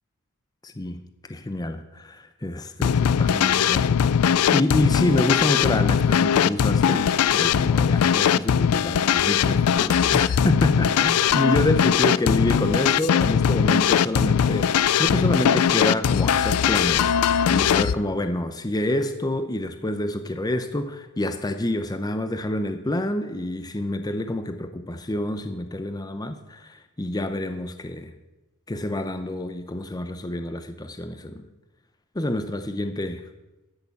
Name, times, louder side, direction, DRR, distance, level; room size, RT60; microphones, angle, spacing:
voice 1, 0.6-1.0 1.3-28.1 28.7-31.4 32.1-33.2, left 1 dB, 20° left, 8 dB, 0.7 m, -27 dB
sound 1, 2.8-17.9, left 8 dB, 85° left, 0.4 m, -20 dB
13.0 x 6.8 x 7.0 m, 1.0 s
head